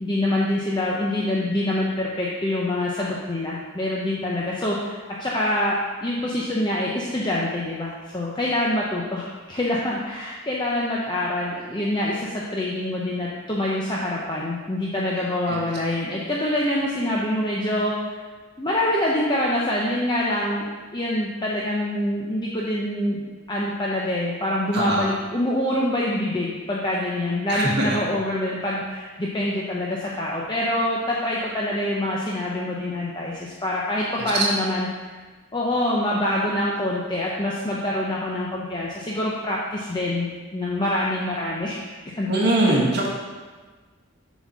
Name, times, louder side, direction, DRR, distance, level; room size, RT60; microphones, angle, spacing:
voice 1, 0.0-18.2 18.6-20.6 20.9-35.1 35.5-41.8 42.2-42.8, left 1 dB, 20° left, -4 dB, 0.7 m, -25 dB
voice 2, 24.7-25.1 27.5-28.0 42.3-43.1, right 1 dB, 50° right, -3 dB, 1.5 m, -21 dB
7.3 x 4.1 x 6.1 m, 1.4 s
head